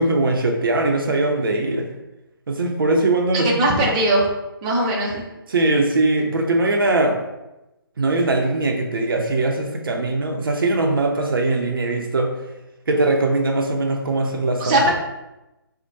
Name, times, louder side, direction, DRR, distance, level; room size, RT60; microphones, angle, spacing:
voice 1, 0.0-1.9 2.5-3.5 5.5-7.2 8.0-12.3 12.9-14.9, right 2 dB, 65° right, 2 dB, 0.6 m, -21 dB
voice 2, 3.3-4.3 4.6-5.2 14.6-14.9, right 1 dB, 20° right, -3 dB, 0.5 m, -19 dB
4.4 x 2.1 x 2.7 m, 0.98 s
figure-of-eight pair, 150°, 12 cm